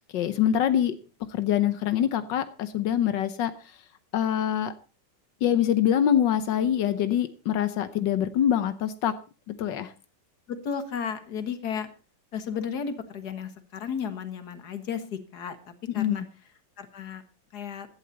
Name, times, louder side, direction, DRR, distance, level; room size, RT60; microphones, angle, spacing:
voice 1, 0.1-0.9 1.3-3.5 4.1-4.7 5.4-9.1 9.6-9.9 15.9-16.2, left 10 dB, 85° left, 11 dB, 1.6 m, -24 dB
voice 2, 10.5-11.9 12.3-16.2 16.8-17.2 17.5-17.9, left 7 dB, 65° left, 10 dB, 2.0 m, -34 dB
15.5 x 12.0 x 4.1 m, 0.34 s
omnidirectional pair, 1.9 m